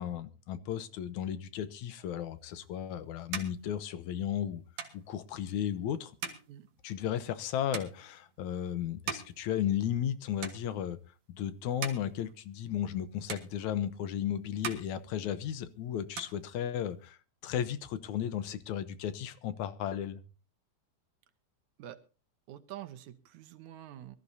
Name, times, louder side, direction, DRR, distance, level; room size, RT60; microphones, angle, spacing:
voice 1, 0.0-4.6 4.9-6.1 6.8-11.0 11.3-17.2 17.4-20.2, left 10 dB, 80° left, 2.3 m, -34 dB
sound 1, 2.5-10.1 10.4-11.1 11.5-13.0 13.3-14.2 14.5-15.7 16.0-17.1, right 7 dB, 70° right, 3.0 m, -44 dB
voice 2, 22.5-24.2, right 12 dB, 85° right, 2.5 m, -46 dB
23.5 x 13.5 x 2.7 m
omnidirectional pair, 3.3 m